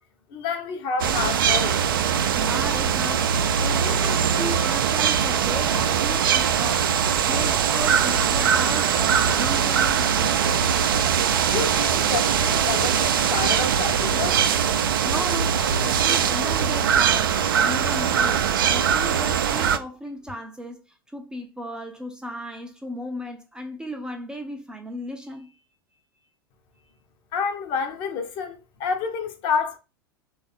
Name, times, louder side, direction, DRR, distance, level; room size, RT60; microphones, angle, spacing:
voice 1, 0.3-1.8 11.4-14.6 27.3-29.8, left 5 dB, 40° left, 0.8 m, -29 dB
sound 1, 1.0-19.8, right 8 dB, 65° right, 0.4 m, -21 dB
voice 2, 2.3-3.3 3.6-7.0 7.3-10.6 15.0-25.6, equal, 5° right, 0.5 m, -35 dB
Keyboard (musical), 17.0-18.8, right 6 dB, 40° right, 0.8 m, -43 dB
3.3 x 2.5 x 3.9 m
figure-of-eight pair, 85°, 12 cm